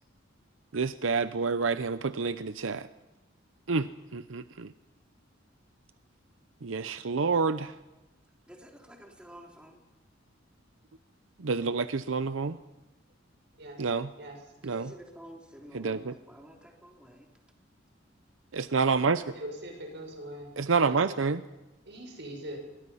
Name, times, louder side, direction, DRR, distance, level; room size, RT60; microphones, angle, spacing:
voice 1, 0.7-2.9 3.7-3.9 4.1-4.7 6.6-7.7 11.4-12.6 13.8-14.1 14.6-14.9 15.7-16.1 18.5-19.2 20.6-21.4, right 4 dB, 85° right, 12 dB, 0.7 m, -28 dB
voice 2, 8.5-9.8 14.6-17.3, equal, 5° right, 1 dB, 3.3 m, -50 dB
voice 3, 19.3-20.5 20.8-21.0 21.9-22.6, right 1 dB, 60° right, 3 dB, 6.5 m, -41 dB
26.0 x 23.0 x 5.7 m, 1.1 s
head